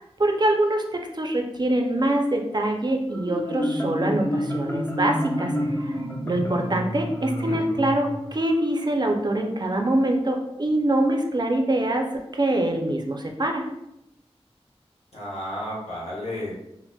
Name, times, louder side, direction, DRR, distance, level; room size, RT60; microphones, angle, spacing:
voice 1, 0.0-5.5 5.8-6.0 6.2-12.1 12.3-13.6, right 1 dB, 40° right, 3 dB, 0.4 m, -24 dB
Marimba xylophone, 3.1-8.7, equal, 20° left, 0.6 m, -29 dB
voice 2, 15.1-16.5, left 1 dB, 80° left, -6 dB, 1.1 m, -33 dB
4.0 x 2.1 x 2.2 m, 0.85 s
wide cardioid pair, 60°, 11 cm